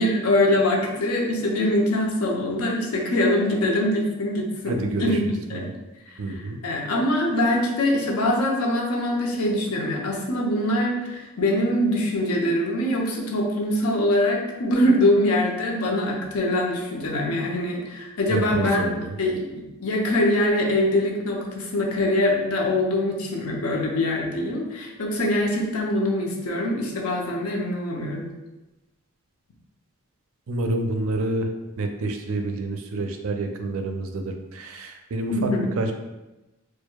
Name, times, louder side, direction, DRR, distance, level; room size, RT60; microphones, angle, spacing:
voice 1, 0.0-5.7 6.1-18.8 19.2-28.3 35.3-35.7, left 1 dB, 85° left, -1 dB, 0.7 m, -23 dB
voice 2, 4.7-5.2 5.5-5.7 6.2-6.6 18.3-19.2 30.5-31.5 31.8-35.5 35.8-35.9, right 2 dB, 70° right, 5 dB, 0.4 m, -28 dB
4.6 x 2.2 x 2.2 m, 1.0 s
head